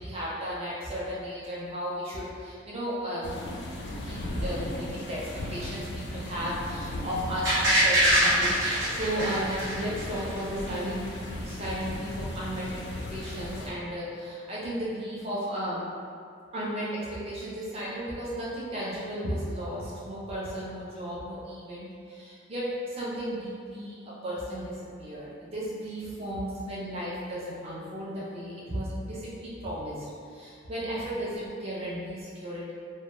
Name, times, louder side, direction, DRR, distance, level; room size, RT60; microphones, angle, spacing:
voice 1, 0.0-3.3 3.6-8.6 8.9-11.1 11.4-12.7 13.1-15.9 16.5-24.0 24.2-29.9 30.3-32.7, equal, 30° right, -7 dB, 0.4 m, -34 dB
sound 1, 3.2-13.7, left 1 dB, 55° left, 0.3 m, -37 dB
sound 2, 7.5-10.4 10.7-10.8, equal, 55° right, 0.7 m, -24 dB
2.1 x 2.1 x 2.9 m, 2.4 s
head